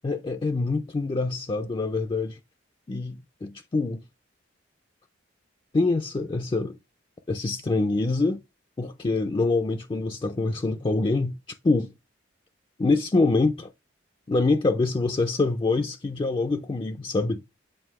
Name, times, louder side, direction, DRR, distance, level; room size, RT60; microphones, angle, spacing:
voice 1, 0.0-2.4 2.9-4.0 5.7-6.8 7.3-8.4 8.8-11.4 11.6-11.9 12.8-13.7 14.3-17.5, left 3 dB, 25° left, 0.4 m, -25 dB
7.5 x 2.7 x 4.7 m
head